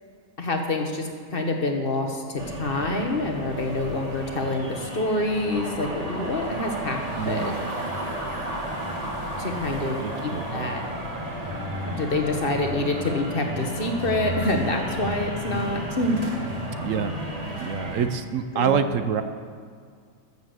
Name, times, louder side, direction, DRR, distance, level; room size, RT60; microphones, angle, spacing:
voice 1, 0.4-7.0 7.3-7.6 9.4-10.8 11.9-16.2 18.5-18.8, left 2 dB, 40° left, 3 dB, 1.5 m, -27 dB
sound 1, 2.4-18.1, equal, 25° right, 1.7 m, -32 dB
voice 2, 7.1-7.5 10.0-10.7 16.8-17.1 17.6-19.2, right 7 dB, 65° right, 9 dB, 1.0 m, -26 dB
12.5 x 7.3 x 7.9 m, 2.1 s
omnidirectional pair, 1.6 m